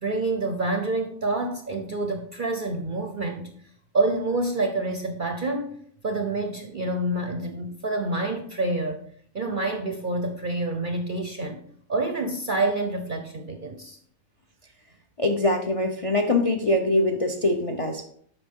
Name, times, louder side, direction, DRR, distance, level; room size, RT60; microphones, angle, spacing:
voice 1, 0.0-3.5 3.9-5.7 6.0-9.0 9.3-11.6 11.9-14.0, right 2 dB, 50° right, 5 dB, 0.6 m, -27 dB
voice 2, 15.2-18.1, left 2 dB, 45° left, 4 dB, 0.4 m, -23 dB
8.1 x 5.7 x 3.7 m, 0.63 s
omnidirectional pair, 1.6 m